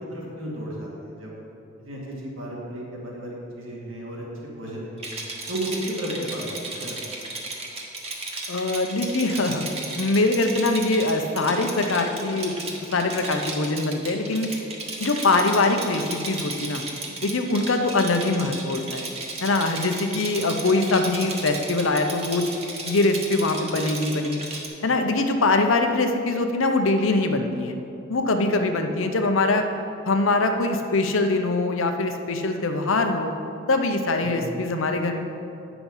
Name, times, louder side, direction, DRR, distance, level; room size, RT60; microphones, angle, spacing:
voice 1, 0.0-1.4 1.8-5.0 5.5-7.0 34.2-34.6, right 1 dB, 80° right, -4 dB, 2.1 m, -33 dB
Rattle, 5.0-24.7, right 3 dB, 30° right, 1.2 m, -34 dB
voice 2, 8.5-9.6 10.0-12.6 12.9-14.5 15.0-16.8 17.2-19.1 19.4-22.5 22.8-24.4 24.8-27.8 28.1-29.6 30.0-33.3 33.7-35.2, left 2 dB, 80° left, 5 dB, 0.8 m, -23 dB
9.0 x 6.0 x 5.4 m, 2.7 s
head